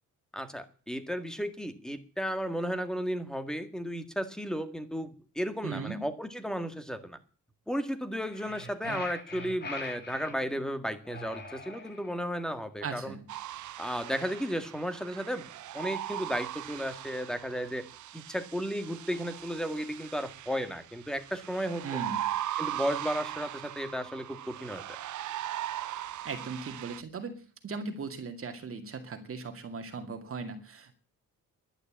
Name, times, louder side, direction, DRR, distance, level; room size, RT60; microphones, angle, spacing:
voice 1, 0.3-7.2 7.7-13.2 13.8-15.5 15.7-17.9 18.1-22.0 22.6-24.8, equal, ahead, 10 dB, 1.8 m, -34 dB
voice 2, 5.6-6.0 12.8-13.2 21.8-22.3 26.2-30.9, right 4 dB, 45° right, 5 dB, 2.3 m, -38 dB
sound 1, 8.2-10.4 11.0-12.3, left 2 dB, 30° left, 3.0 m, -42 dB
sound 2, 13.3-27.0, right 13 dB, 70° right, 0.8 m, -39 dB
11.5 x 10.0 x 8.7 m, 0.39 s
cardioid pair, 120°, 31 cm